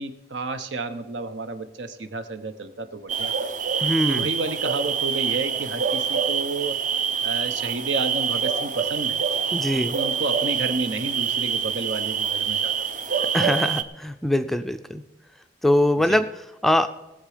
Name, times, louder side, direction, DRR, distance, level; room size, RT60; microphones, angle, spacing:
voice 1, 0.0-3.3 4.1-6.8 7.2-9.2 9.7-12.9 16.1-16.2, right 3 dB, 75° right, 9 dB, 1.0 m, -31 dB
sound 1, 3.1-13.8, right 7 dB, 40° right, 0.6 m, -26 dB
voice 2, 3.8-4.3 9.5-10.0 13.3-15.0 15.6-16.9, left 1 dB, ahead, 8 dB, 0.4 m, -22 dB
19.0 x 7.4 x 5.0 m, 1.1 s
head